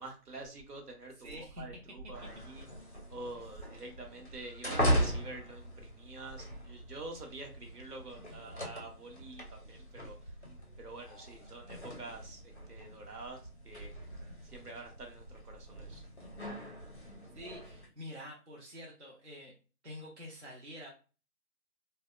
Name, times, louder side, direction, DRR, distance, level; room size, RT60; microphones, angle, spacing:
voice 1, 0.0-2.7 3.1-10.2 10.8-13.9 14.4-16.0, right 2 dB, 75° right, 3 dB, 0.9 m, -47 dB
voice 2, 1.2-1.7 17.0-19.5 19.8-20.9, left 1 dB, 45° right, -3 dB, 0.5 m, -47 dB
sound 1, 2.1-17.9, equal, 45° left, 0.5 m, -39 dB
2.6 x 2.1 x 2.3 m, 0.34 s
figure-of-eight pair, 180°, 47 cm